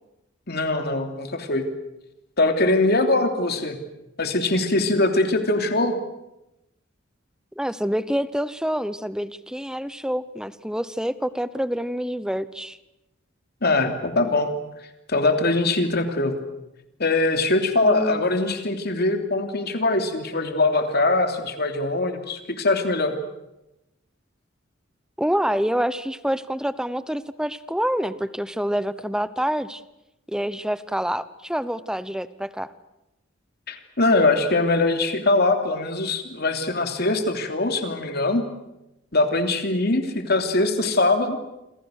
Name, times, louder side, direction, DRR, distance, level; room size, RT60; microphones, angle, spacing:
voice 1, 0.5-1.7 2.4-3.8 4.2-6.0 13.6-14.5 15.1-16.4 17.0-23.2 33.7-38.4 39.1-41.4, left 2 dB, 55° left, 6 dB, 3.1 m, -22 dB
voice 2, 7.6-12.8 17.8-18.2 25.2-29.8 30.3-32.7, equal, 5° right, 15 dB, 0.9 m, -27 dB
28.0 x 26.5 x 6.6 m, 0.92 s
head